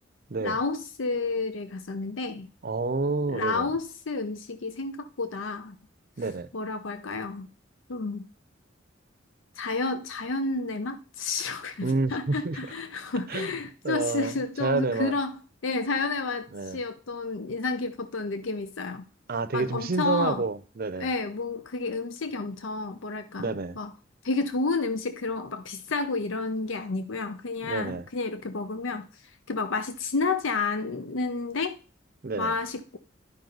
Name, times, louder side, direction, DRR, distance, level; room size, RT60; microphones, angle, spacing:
voice 1, 0.4-2.5 3.3-5.8 6.5-7.5 7.9-8.2 9.6-19.0 19.5-20.4 21.0-23.5 23.8-23.9 24.2-29.1 29.5-31.8 32.4-33.0, left 3 dB, 80° left, 0.7 m, -30 dB
voice 2, 2.6-3.7 6.2-6.5 11.8-12.6 13.3-13.5 13.8-15.1 16.5-16.8 19.3-21.1 23.4-23.8 27.6-28.1 32.2-32.6, right 3 dB, 50° right, 0.6 m, -29 dB
10.5 x 5.4 x 3.9 m
head